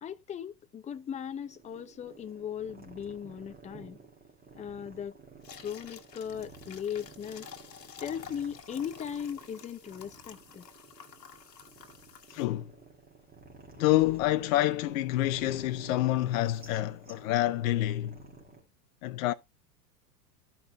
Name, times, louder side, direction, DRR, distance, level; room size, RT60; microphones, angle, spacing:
voice 1, 0.0-4.0 4.5-5.2 5.6-7.5 8.0-10.7, left 8 dB, 15° left, 0.7 m, -38 dB
sound 1, 0.9-18.6, right 4 dB, 20° right, 2.8 m, -52 dB
sound 2, 5.4-12.5, left 8 dB, 90° left, 1.5 m, -50 dB
voice 2, 12.3-12.7 13.8-18.2 19.0-19.3, left 15 dB, 55° left, 0.7 m, -27 dB
13.5 x 5.6 x 2.3 m
hypercardioid pair, 105°, 48 cm